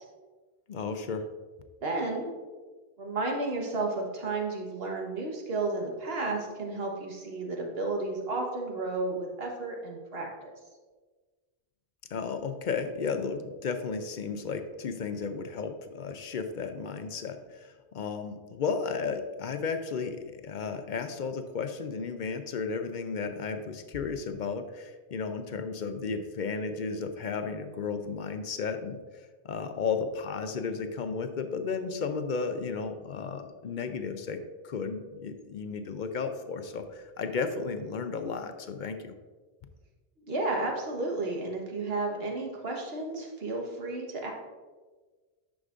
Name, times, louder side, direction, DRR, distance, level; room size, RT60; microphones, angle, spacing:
voice 1, 0.7-1.3 12.1-29.0 29.4-34.4 34.6-39.1, left 5 dB, 55° left, 8 dB, 0.6 m, -34 dB
voice 2, 1.8-2.3 3.0-10.3 40.3-44.3, right 2 dB, 65° right, 0 dB, 1.5 m, -32 dB
9.7 x 6.1 x 2.5 m, 1.4 s
omnidirectional pair, 1.1 m